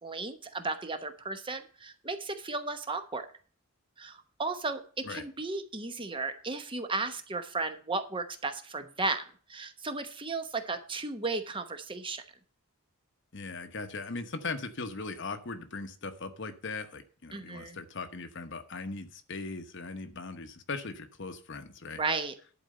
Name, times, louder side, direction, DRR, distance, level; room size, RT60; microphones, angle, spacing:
voice 1, 0.0-3.2 4.0-12.2 17.3-17.8 22.0-22.3, right 3 dB, 25° right, 7 dB, 1.0 m, -35 dB
voice 2, 13.3-22.0, left 3 dB, 55° left, 9 dB, 1.1 m, -39 dB
11.0 x 4.5 x 7.7 m, 0.42 s
head